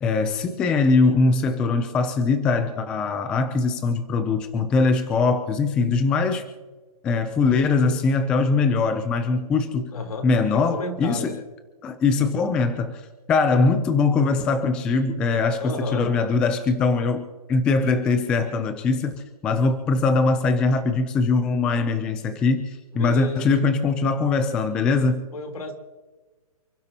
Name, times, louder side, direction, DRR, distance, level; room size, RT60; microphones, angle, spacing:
voice 1, 0.0-6.4 7.0-9.9 10.2-11.4 11.8-25.3, left 4 dB, 5° left, 9 dB, 0.4 m, -22 dB
voice 2, 9.9-10.3 10.5-11.4 15.6-16.1 22.9-23.6 25.3-25.7, left 3 dB, 65° left, 3 dB, 3.5 m, -31 dB
29.0 x 12.0 x 2.8 m, 1.3 s
hypercardioid pair, 165°, 19 cm